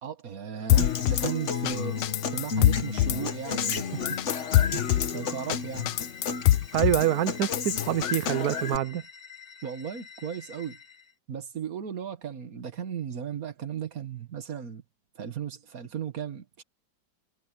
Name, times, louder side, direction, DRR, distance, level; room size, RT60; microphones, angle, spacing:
voice 1, 0.0-2.0 2.3-4.2 4.7-6.0 9.6-10.8 11.3-14.8 15.2-16.6, right 8 dB, 45° right, 1.8 m, -36 dB
sound 1, 0.6-11.1, left 6 dB, 30° left, 1.8 m, -48 dB
Drum kit / Snare drum, 0.7-1.3 1.7-1.8 2.0-3.2 3.6-3.8 4.1-5.1 5.5-5.6 5.9-7.0 7.4-8.3, left 14 dB, 80° left, 1.5 m, -24 dB
Human voice / Acoustic guitar, 0.8-8.8, left 6 dB, 45° left, 1.1 m, -32 dB
voice 2, 6.7-9.0, right 12 dB, 70° right, 0.9 m, -26 dB
omnidirectional pair, 2.3 m